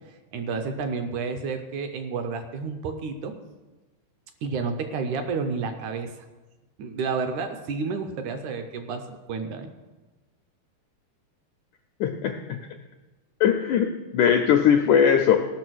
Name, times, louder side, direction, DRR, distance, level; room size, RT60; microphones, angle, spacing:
voice 1, 0.1-3.3 4.4-6.3 6.8-9.7, right 5 dB, 75° right, 6 dB, 1.8 m, -30 dB
voice 2, 12.0-12.6 13.4-15.4, left 8 dB, 85° left, 5 dB, 1.7 m, -20 dB
16.5 x 5.9 x 6.2 m, 1.2 s
omnidirectional pair, 4.3 m